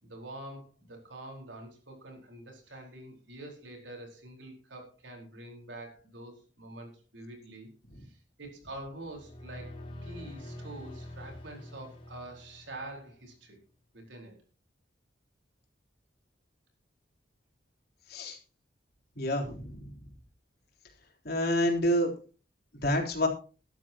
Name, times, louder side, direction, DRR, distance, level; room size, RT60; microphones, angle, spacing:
voice 1, 0.0-7.7 8.0-9.7 10.0-13.6 13.9-14.4, right 1 dB, 80° right, 1 dB, 4.4 m, -46 dB
sound 1, 9.0-13.3, left 1 dB, 30° left, 3.8 m, -46 dB
voice 2, 19.2-19.9 21.2-22.1 22.8-23.3, equal, 55° left, 1 dB, 3.8 m, -28 dB
17.5 x 12.5 x 2.9 m, 0.36 s
head